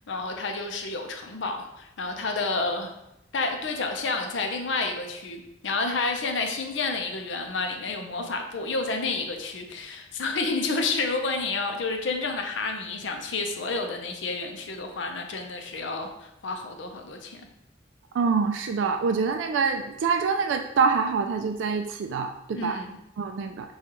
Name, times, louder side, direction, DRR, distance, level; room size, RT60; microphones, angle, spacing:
voice 1, 0.1-2.9 3.3-17.4 22.5-23.0, left 3 dB, 75° left, 4 dB, 0.6 m, -30 dB
voice 2, 18.1-22.8 23.2-23.7, right 5 dB, 80° right, 5 dB, 0.3 m, -25 dB
6.2 x 2.3 x 2.9 m, 0.84 s
head